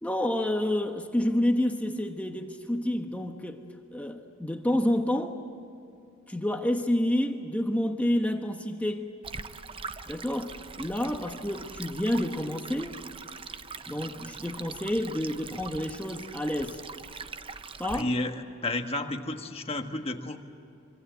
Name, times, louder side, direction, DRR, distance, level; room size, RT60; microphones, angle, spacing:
voice 1, 0.0-3.6 3.9-5.4 6.3-9.1 10.1-12.9 13.9-16.8 17.8-18.1, left 1 dB, 5° left, 4 dB, 1.1 m, -29 dB
Stream, 9.2-18.0, right 5 dB, 25° right, 0.6 m, -42 dB
voice 2, 17.9-20.4, left 2 dB, 30° left, 5 dB, 1.5 m, -31 dB
25.5 x 25.0 x 8.1 m, 2.7 s
head